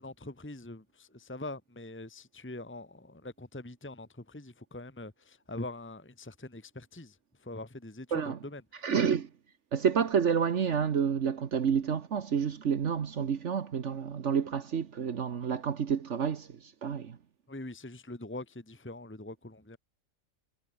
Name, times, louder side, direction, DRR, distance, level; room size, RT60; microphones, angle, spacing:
voice 1, 0.0-7.2 7.4-8.9 17.5-19.8, left 2 dB, 10° left, 1.4 m, -43 dB
voice 2, 8.8-9.3 9.7-17.2, right 7 dB, 60° right, 1.4 m, -29 dB
omnidirectional pair, 1.4 m